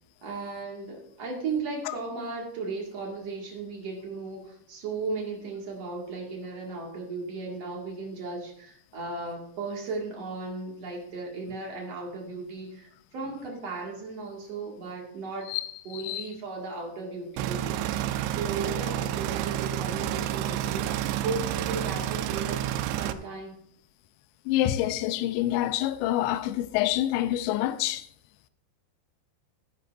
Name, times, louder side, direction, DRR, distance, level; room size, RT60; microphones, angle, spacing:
voice 1, 0.2-15.5 15.8-20.9 21.2-23.6, right 3 dB, 50° right, 2.2 m, -36 dB
voice 2, 15.5-16.3 24.5-28.1, left 13 dB, 80° left, 2.7 m, -27 dB
sound 1, 17.4-23.1, right 12 dB, 80° right, 2.7 m, -30 dB
16.5 x 9.7 x 2.6 m
omnidirectional pair, 5.5 m